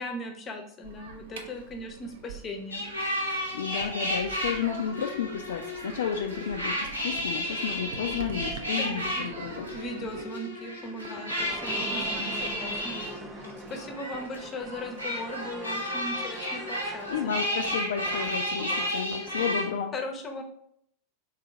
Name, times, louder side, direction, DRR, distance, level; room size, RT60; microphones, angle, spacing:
voice 1, 0.0-2.9 8.8-9.3 9.7-13.0 13.3-13.4 13.7-17.1 19.9-20.4, left 1 dB, 25° left, 4 dB, 0.8 m, -38 dB
sound 1, 0.8-10.2, right 5 dB, 60° right, 0.6 m, -44 dB
sound 2, 2.7-19.6, equal, 85° right, 1.5 m, -33 dB
voice 2, 3.5-9.7 17.1-19.9, left 8 dB, 60° left, 3 dB, 0.4 m, -32 dB
sound 3, 10.9-19.7, right 2 dB, 10° right, 0.5 m, -42 dB
3.9 x 2.7 x 4.6 m, 0.69 s
figure-of-eight pair, 90°, 0 cm